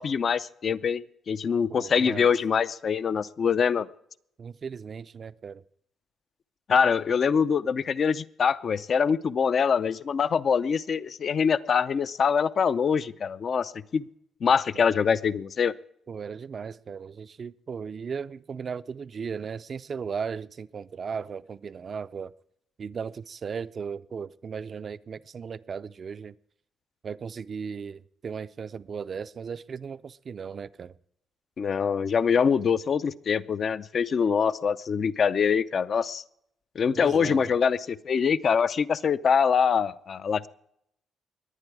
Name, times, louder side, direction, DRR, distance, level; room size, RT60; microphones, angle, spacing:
voice 1, 0.0-3.9 6.7-14.0 14.4-15.7 31.6-36.2 36.8-40.5, left 6 dB, 50° left, 0.5 m, -24 dB
voice 2, 1.7-2.3 4.4-5.6 14.5-14.6 16.1-22.3 22.8-26.4 27.0-30.9 37.0-37.5, right 6 dB, 45° right, 0.5 m, -36 dB
21.0 x 9.1 x 4.8 m
cardioid pair, 90°, 0 cm